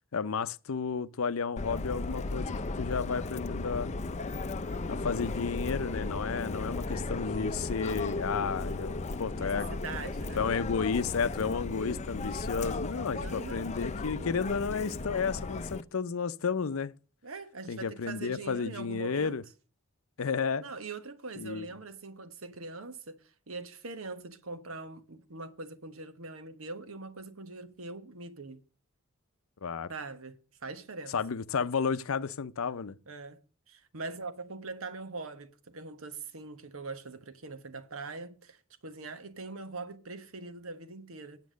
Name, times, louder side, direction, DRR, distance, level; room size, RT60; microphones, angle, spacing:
voice 1, 0.1-3.9 4.9-9.7 10.4-16.9 17.7-19.4 20.2-20.6 21.4-21.7 29.6-29.9 31.1-33.0, left 5 dB, 75° left, 0.6 m, -32 dB
Subway metro underground, 1.6-15.8, left 3 dB, 35° left, 0.5 m, -35 dB
voice 2, 9.3-10.5 13.1-13.7 17.2-19.4 20.6-28.6 29.9-31.2 33.1-33.4 33.7-41.4, right 3 dB, 75° right, 1.2 m, -42 dB
9.4 x 7.4 x 6.3 m
head